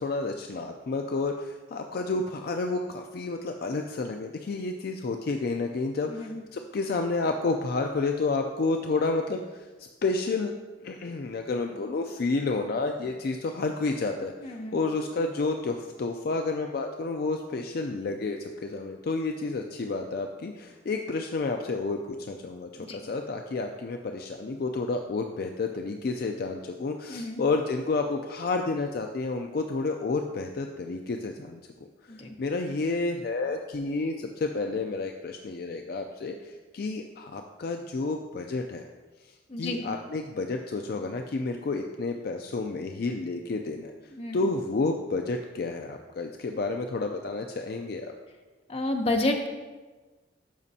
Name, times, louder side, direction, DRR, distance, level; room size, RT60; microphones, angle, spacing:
voice 1, 0.0-10.5 10.8-31.6 32.1-38.8 39.2-43.9 44.3-48.1, left 3 dB, 50° left, 4 dB, 0.4 m, -30 dB
voice 2, 6.1-6.4 14.4-14.8 22.8-23.0 27.1-27.4 32.1-32.3 39.5-39.8 44.1-44.4 48.7-49.5, left 2 dB, 30° left, 3 dB, 0.7 m, -30 dB
12.5 x 5.1 x 2.7 m, 1.3 s
head